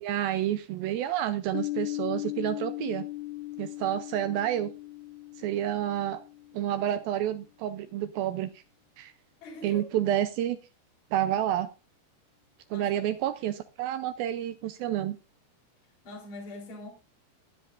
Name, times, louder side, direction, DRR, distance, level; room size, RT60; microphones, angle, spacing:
voice 1, 0.0-3.1 3.6-4.7 5.4-6.2 6.5-8.5 9.0-9.1 9.6-10.6 11.1-11.7 12.7-15.2, right 11 dB, 85° right, 2.1 m, -29 dB
Piano, 1.5-6.9, left 18 dB, 80° left, 2.9 m, -38 dB
voice 2, 9.4-9.8 12.7-13.1 16.0-16.9, left 1 dB, 30° left, 4.3 m, -43 dB
22.0 x 7.6 x 2.5 m
omnidirectional pair, 4.9 m